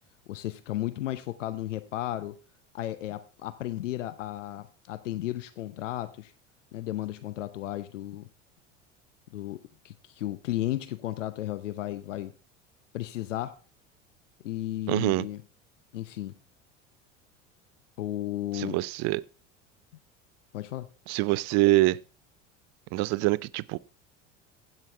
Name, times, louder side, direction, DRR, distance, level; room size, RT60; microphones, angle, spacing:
voice 1, 0.3-2.4 2.7-6.3 6.7-8.3 9.3-9.6 9.8-12.3 12.9-13.6 14.4-15.4 15.9-16.3 18.0-18.8 20.5-20.9, left 14 dB, 75° left, 0.8 m, -34 dB
voice 2, 14.9-15.3 18.5-19.2 21.1-22.0 22.9-23.8, right 19 dB, 45° right, 0.5 m, -25 dB
15.5 x 7.0 x 3.5 m
hypercardioid pair, 75°, 37 cm